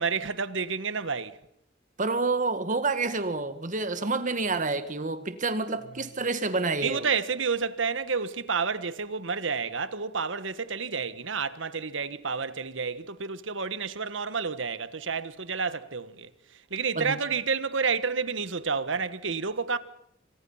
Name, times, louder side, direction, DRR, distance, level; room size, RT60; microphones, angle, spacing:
voice 1, 0.0-1.4 6.8-16.3 16.7-19.8, right 5 dB, 75° right, 1.3 m, -30 dB
voice 2, 2.0-7.1 16.9-17.2, right 3 dB, 40° right, 1.8 m, -28 dB
28.0 x 25.5 x 5.7 m
head